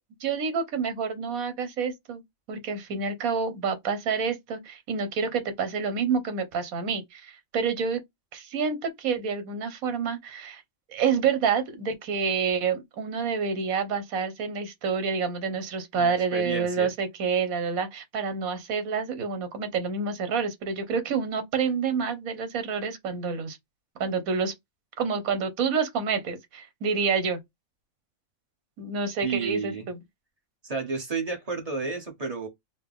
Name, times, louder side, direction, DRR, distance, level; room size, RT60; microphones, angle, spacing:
voice 1, 0.2-2.2 2.5-8.0 8.3-10.6 10.9-23.6 24.0-24.5 25.0-27.4 28.8-30.0, right 5 dB, 80° right, 1.3 m, -28 dB
voice 2, 16.0-16.9 29.2-29.9 30.6-32.5, right 4 dB, 30° right, 0.9 m, -31 dB
4.0 x 2.1 x 3.5 m
omnidirectional pair, 1.5 m